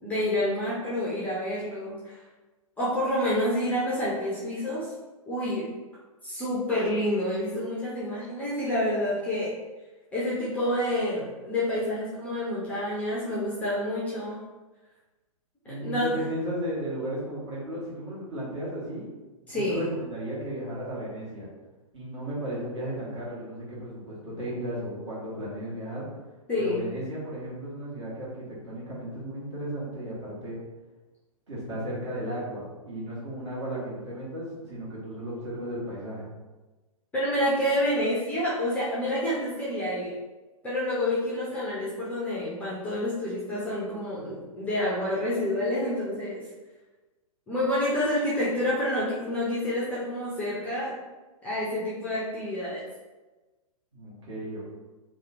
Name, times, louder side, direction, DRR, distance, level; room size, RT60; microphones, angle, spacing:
voice 1, 0.0-2.2 2.8-4.9 5.3-5.7 6.2-9.5 10.1-14.4 15.7-16.2 19.5-19.8 26.5-26.9 37.1-40.2 40.6-46.4 47.5-50.9 51.4-52.8, left 1 dB, 10° left, -8 dB, 0.5 m, -28 dB
voice 2, 15.6-19.1 19.4-21.5 21.9-26.1 26.6-30.6 31.5-36.3 53.9-54.7, right 1 dB, 50° right, -7 dB, 1.3 m, -35 dB
2.7 x 2.2 x 2.8 m, 1.2 s
figure-of-eight pair, 115°, 19 cm